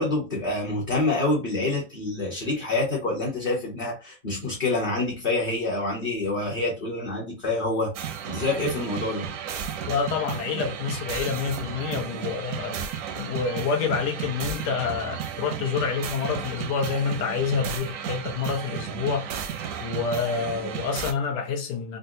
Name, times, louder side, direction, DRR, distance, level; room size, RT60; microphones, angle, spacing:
voice 1, 0.0-7.9 8.3-9.3, left 2 dB, 35° left, 1.0 m, -27 dB
sound 1, 7.9-21.1, right 8 dB, 70° right, 0.8 m, -33 dB
voice 2, 9.9-12.9 13.2-19.3 19.8-22.0, left 6 dB, 80° left, 1.3 m, -28 dB
3.8 x 2.2 x 2.6 m
omnidirectional pair, 1.8 m